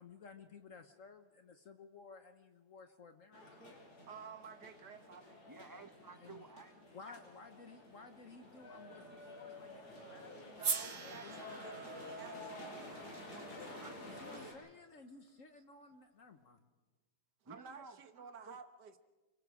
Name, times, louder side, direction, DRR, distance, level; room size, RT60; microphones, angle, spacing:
voice 1, 0.0-3.6 6.2-6.5 6.9-10.7 11.0-12.2 14.0-16.7, left 4 dB, 55° left, 1.4 m, -56 dB
sound 1, 3.3-14.5, left 1 dB, 70° left, 6.0 m, -51 dB
voice 2, 4.1-5.4 10.4-14.0 14.4-14.5 17.4-19.0, right 6 dB, 85° right, 1.9 m, -53 dB
voice 3, 5.4-7.2 10.7-11.0 11.2-11.5 12.9-13.2 13.6-14.5 17.4-18.6, right 4 dB, 15° right, 0.7 m, -56 dB
sound 2, 8.5-14.3, equal, 30° left, 3.7 m, -65 dB
sound 3, 10.6-14.8, right 5 dB, 40° right, 1.3 m, -43 dB
29.5 x 23.5 x 5.0 m
omnidirectional pair, 1.7 m